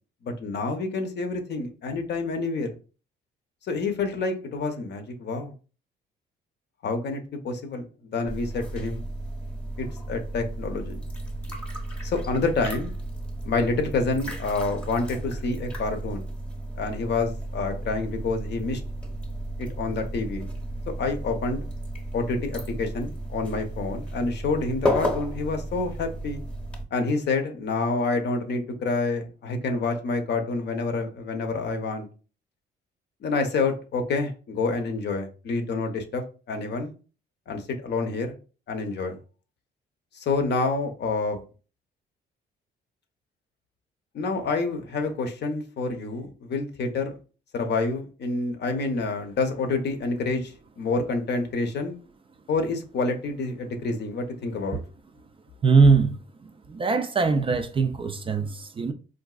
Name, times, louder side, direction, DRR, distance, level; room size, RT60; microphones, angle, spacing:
voice 1, 0.2-2.7 3.6-5.5 6.8-7.8 8.1-9.0 9.8-11.0 12.0-12.9 13.4-16.3 16.8-18.8 19.6-20.5 21.0-21.6 22.1-26.4 26.9-32.1 33.2-36.9 37.5-38.4 38.7-39.2 40.1-41.4 44.1-47.2 47.5-52.0 52.5-54.8, left 3 dB, 60° left, 0.7 m, -28 dB
sound 1, 8.3-26.8, right 1 dB, 5° left, 0.8 m, -33 dB
voice 2, 55.6-56.2 56.7-58.9, right 4 dB, 25° right, 0.3 m, -21 dB
3.8 x 2.5 x 2.3 m
cardioid pair, 90°, 20 cm